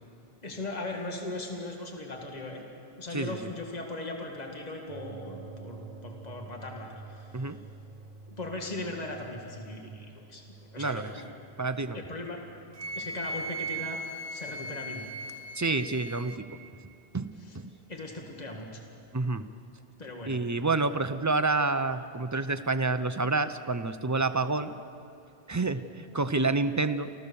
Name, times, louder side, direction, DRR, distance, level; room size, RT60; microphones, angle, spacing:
voice 1, 0.4-2.6 2.9-7.3 8.3-10.4 10.7-11.3 11.9-12.6 12.9-14.0 14.3-15.1 17.9-18.8 20.0-20.4 25.6-25.7, left 2 dB, 40° left, 1 dB, 2.1 m, -38 dB
voice 2, 3.1-3.5 7.3-7.6 10.8-11.1 11.6-12.0 15.6-16.6 17.1-17.7 19.1-19.5 20.3-24.7 25.5-27.2, right 3 dB, 20° right, 10 dB, 0.5 m, -28 dB
sound 1, 4.9-14.0, right 3 dB, 50° right, 1.0 m, -49 dB
Wind instrument woodwind instrument, 12.8-16.4, right 2 dB, 75° right, 1.3 m, -37 dB
27.0 x 15.0 x 7.0 m, 2.6 s
omnidirectional pair, 1.1 m